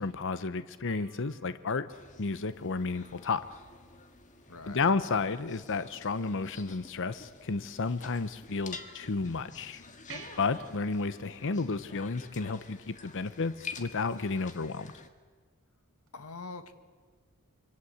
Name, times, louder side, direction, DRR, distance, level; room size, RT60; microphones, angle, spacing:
voice 1, 0.0-1.9 2.2-3.4 4.7-9.8 10.4-14.9, left 4 dB, 60° left, 13 dB, 0.8 m, -32 dB
sound 1, 0.9-3.5 6.3-7.3 10.1-13.0 16.1-16.2, right 5 dB, 60° right, 3.0 m, -54 dB
sound 2, 1.9-15.1, left 4 dB, 35° left, 1.8 m, -49 dB
sound 3, 3.0-8.6 9.0-11.9, right 1 dB, 10° left, 2.7 m, -62 dB
voice 2, 4.5-4.9 16.1-16.7, left 4 dB, 75° left, 9 dB, 1.8 m, -43 dB
25.5 x 24.5 x 8.0 m, 1.5 s
head